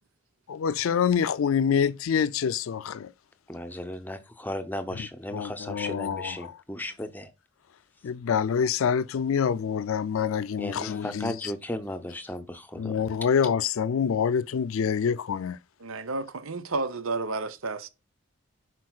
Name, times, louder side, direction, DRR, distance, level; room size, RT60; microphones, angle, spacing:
voice 1, 0.5-3.1 5.3-6.5 8.0-11.5 12.8-15.6, left 7 dB, 75° left, 0.4 m, -26 dB
voice 2, 3.5-7.3 10.6-13.0, left 1 dB, 10° left, 0.7 m, -35 dB
voice 3, 15.8-17.9, right 3 dB, 80° right, 0.8 m, -31 dB
10.5 x 4.6 x 2.4 m
head